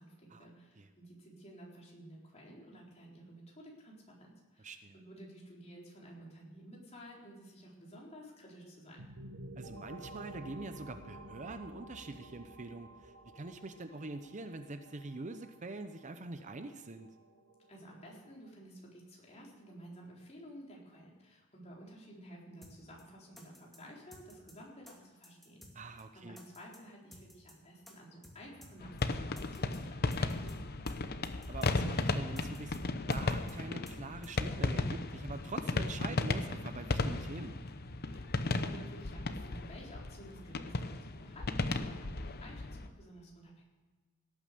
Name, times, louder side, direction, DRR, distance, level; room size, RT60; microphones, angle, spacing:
voice 1, 0.0-9.0 17.7-31.0 38.0-43.6, equal, 30° left, -3 dB, 4.1 m, -53 dB
voice 2, 4.6-5.0 9.6-17.1 25.7-26.4 31.5-37.5, right 3 dB, 35° right, 9 dB, 0.7 m, -44 dB
sound 1, 9.0-18.5, right 1 dB, 90° right, 1.5 m, -52 dB
sound 2, 22.6-22.7 23.0-23.1 23.4-23.8 24.1-24.5 24.9-25.0 25.2-25.7 26.0-26.1 26.4-26.8 27.1-27.5 27.9-28.0 28.2-28.4 28.6-28.7 29.0-29.1 29.4-29.8 30.1-30.5 30.9-31.0 31.2-31.7 32.0-32.1 32.4-32.8 33.1-33.5 33.9-34.0 34.2-34.3, equal, ahead, 2.3 m, -55 dB
sound 3, 28.8-42.9, left 2 dB, 50° left, 0.8 m, -35 dB
17.5 x 9.0 x 6.7 m, 1.3 s
head